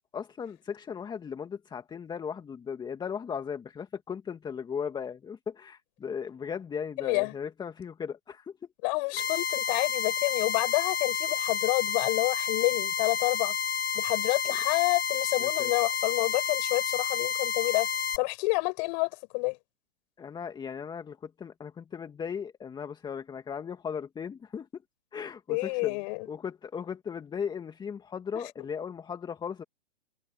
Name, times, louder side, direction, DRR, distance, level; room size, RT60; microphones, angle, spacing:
voice 1, 0.1-8.5 9.1-9.3 15.4-15.7 20.2-24.7 25.1-26.0 26.3-29.6, left 7 dB, 15° left, 1.9 m, -37 dB
voice 2, 7.0-7.3 8.8-13.6 13.9-17.9 18.2-19.6 25.5-26.3 28.3-28.4, left 32 dB, 40° left, 6.6 m, -28 dB
sound 1, 9.2-18.2, left 8 dB, 65° left, 4.2 m, -30 dB
hypercardioid pair, 120°, 32 cm